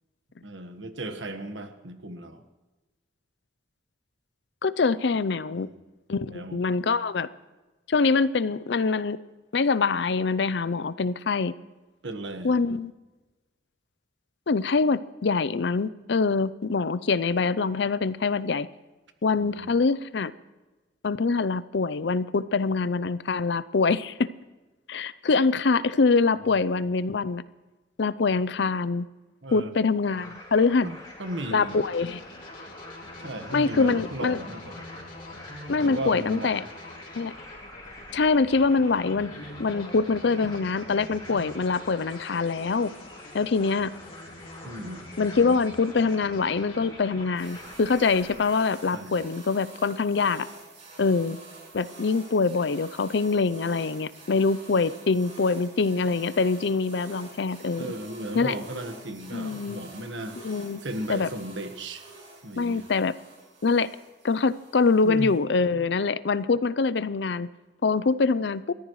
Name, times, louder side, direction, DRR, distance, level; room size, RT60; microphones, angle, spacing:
voice 1, 0.4-2.4 5.5-5.7 6.3-6.6 12.0-12.5 19.4-19.7 26.5-26.6 29.4-29.7 30.8-31.8 33.2-34.8 35.8-36.7 44.6-45.0 48.9-49.2 57.8-62.0 62.4-62.8 65.0-65.4, right 1 dB, 75° right, 7 dB, 1.5 m, -36 dB
voice 2, 4.6-5.7 6.1-7.3 7.9-9.2 9.5-11.5 12.4-12.9 14.5-18.7 19.2-20.3 21.0-24.3 24.9-27.4 28.0-29.1 29.5-30.9 31.5-32.2 33.5-34.4 35.7-36.6 37.2-37.3 38.1-39.3 39.6-42.9 43.3-43.9 45.2-50.5 51.0-51.4 51.7-57.9 58.4-58.5 59.3-59.8 60.4-60.8 61.1-61.3 62.6-63.1 63.6-63.9 64.2-67.5 67.8-68.7, left 4 dB, 65° left, 16 dB, 0.5 m, -24 dB
sound 1, 30.0-48.6, left 1 dB, 20° left, 4.0 m, -46 dB
sound 2, 31.6-48.4, left 1 dB, 45° left, 3.1 m, -45 dB
sound 3, 47.3-65.3, right 3 dB, 35° right, 6.9 m, -48 dB
29.0 x 14.0 x 3.2 m, 1.2 s
head